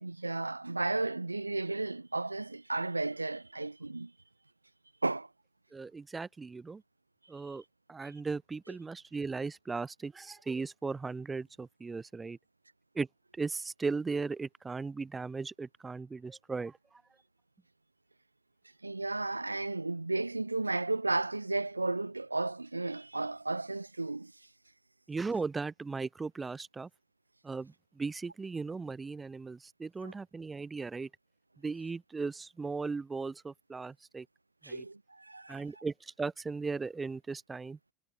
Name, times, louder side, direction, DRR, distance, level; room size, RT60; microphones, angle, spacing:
voice 1, 0.0-4.1 5.0-5.3 8.0-8.1 18.8-24.3 30.0-30.1 34.6-35.8, right 2 dB, 90° right, 0.6 m, -34 dB
voice 2, 5.7-6.8 7.3-7.6 7.9-12.4 13.0-13.1 13.4-16.8 25.1-26.9 27.4-31.1 31.6-34.3 34.7-34.8 35.5-37.8, right 4 dB, 15° right, 0.4 m, -37 dB
figure-of-eight pair, 75°, 0 cm